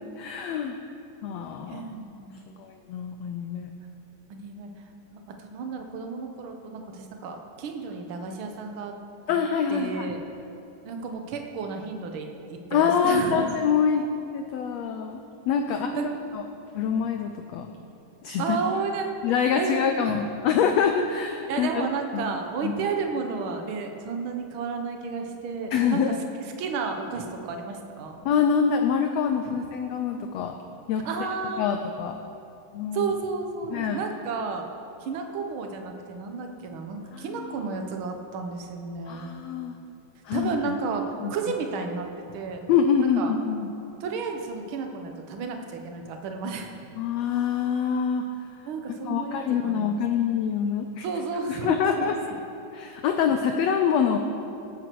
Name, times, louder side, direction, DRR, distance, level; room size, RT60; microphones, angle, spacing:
voice 1, 0.2-0.8 1.2-1.9 2.6-3.7 9.3-10.1 12.7-14.0 14.3-15.9 16.3-16.4 16.7-17.7 18.2-18.6 19.2-21.8 22.1-22.3 22.6-22.8 25.7-26.2 28.2-30.6 30.9-31.1 31.6-32.2 32.7-33.1 33.7-34.0 37.1-37.5 39.1-39.8 40.2-40.8 41.2-41.3 42.7-43.7 47.0-48.2 49.0-51.1 51.5-52.2 52.7-54.2, left 7 dB, 85° left, 5 dB, 1.5 m, -25 dB
voice 2, 1.7-2.5 4.3-4.7 5.1-8.9 9.3-9.4 9.7-10.2 10.8-13.5 15.7-16.1 18.4-19.3 19.5-20.2 21.5-26.1 26.6-28.2 29.4-29.6 31.0-31.6 32.9-34.6 35.0-39.3 40.3-42.1 42.3-42.6 43.2-43.3 44.0-46.7 48.6-50.0 51.0-52.0, right 4 dB, 65° right, 4 dB, 1.3 m, -32 dB
19.0 x 9.0 x 4.6 m, 2.7 s
omnidirectional pair, 3.7 m